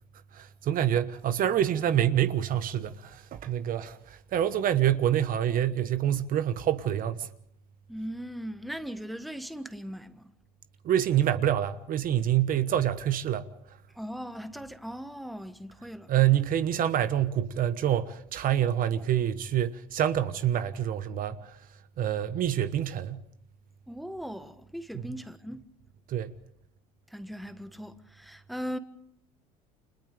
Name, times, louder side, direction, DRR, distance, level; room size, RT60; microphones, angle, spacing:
voice 1, 0.3-7.3 10.8-13.5 16.1-21.6 22.0-23.2 26.1-26.3, right 11 dB, 50° right, 1.2 m, -26 dB
voice 2, 7.9-10.3 13.9-16.1 23.9-25.6 27.1-28.8, equal, ahead, 1.3 m, -39 dB
30.0 x 25.5 x 3.4 m
supercardioid pair, 90°, 19 cm